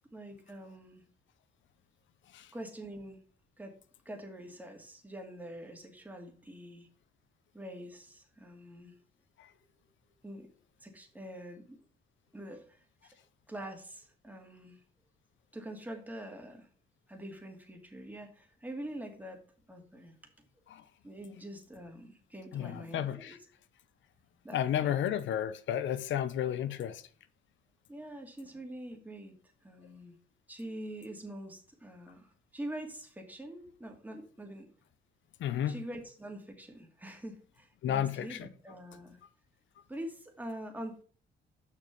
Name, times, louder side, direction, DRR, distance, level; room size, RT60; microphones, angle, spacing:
voice 1, 0.1-1.0 2.5-3.2 3.6-3.8 4.0-6.9 7.5-9.0 10.2-10.5 10.8-11.8 12.3-13.2 13.5-14.8 15.5-16.7 17.1-19.4 19.7-20.2 21.0-23.4 24.4-25.0 27.9-30.2 30.5-34.7 35.7-39.2 39.9-41.0, right 1 dB, 10° right, 2.5 m, -45 dB
voice 2, 22.5-23.4 24.5-27.0 35.4-35.8 37.8-38.4, left 10 dB, 70° left, 0.8 m, -32 dB
6.6 x 6.0 x 7.1 m
cardioid pair, 90°, 20 cm